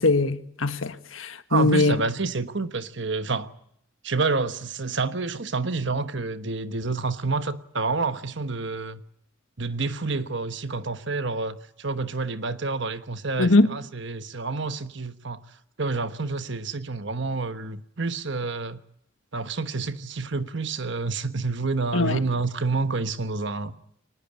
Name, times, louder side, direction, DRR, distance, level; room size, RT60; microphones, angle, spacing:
voice 1, 0.0-2.0 13.4-13.7 21.9-22.2, left 2 dB, 80° left, 1.6 m, -21 dB
voice 2, 1.5-3.5 4.0-9.0 9.6-15.4 15.8-18.8 19.3-23.7, right 3 dB, 60° right, 1.2 m, -28 dB
23.5 x 20.0 x 8.5 m
head